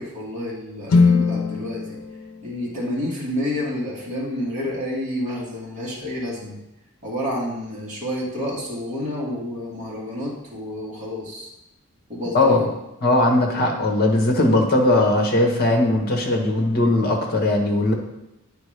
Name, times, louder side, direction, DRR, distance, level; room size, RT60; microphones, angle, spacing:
voice 1, 0.0-2.0 2.4-6.6 7.0-11.5 12.1-12.7, left 1 dB, 35° right, -6 dB, 2.0 m, -29 dB
sound 1, 0.9-4.9, left 4 dB, 75° left, 0.7 m, -24 dB
voice 2, 13.0-17.9, left 2 dB, 45° left, 2 dB, 1.2 m, -19 dB
9.1 x 4.8 x 3.4 m, 0.89 s
head